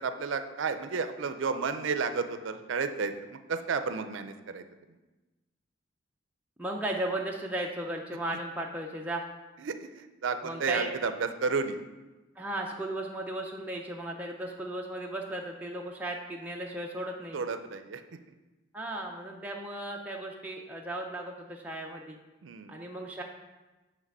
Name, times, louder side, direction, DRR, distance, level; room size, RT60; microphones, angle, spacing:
voice 1, 0.0-4.6 9.6-11.8 17.3-18.0 22.4-22.8, right 5 dB, 70° right, 9 dB, 0.5 m, -32 dB
voice 2, 6.6-9.2 10.4-10.9 12.4-17.4 18.7-22.2 22.7-23.2, right 1 dB, 10° right, -1 dB, 0.4 m, -36 dB
7.3 x 3.3 x 5.4 m, 1.1 s
head